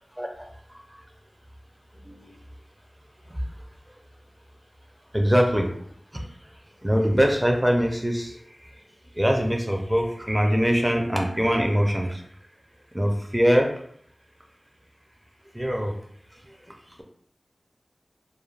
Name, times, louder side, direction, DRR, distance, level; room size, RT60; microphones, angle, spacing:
voice 1, 2.1-2.4 3.3-3.4 5.1-5.7 6.8-8.3 9.2-12.2 12.9-13.7 15.5-15.9, equal, 10° right, 1 dB, 0.4 m, -22 dB
2.3 x 2.2 x 3.1 m, 0.65 s
wide cardioid pair, 65°, 0 cm